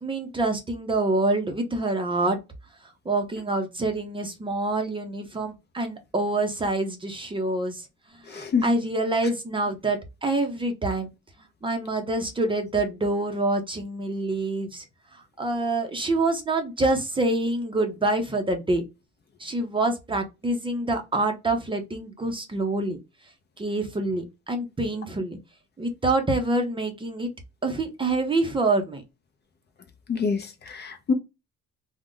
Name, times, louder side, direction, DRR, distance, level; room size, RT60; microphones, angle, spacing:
voice 1, 0.0-2.4 3.1-7.8 8.3-11.1 11.6-14.8 15.4-18.8 19.4-23.0 23.6-25.4 25.8-27.3 27.6-29.0, right 2 dB, 15° right, 0.5 m, -26 dB
voice 2, 8.3-8.7 30.1-31.1, left 5 dB, 35° left, 0.5 m, -26 dB
2.4 x 2.1 x 3.6 m
cardioid pair, 135°, 30 cm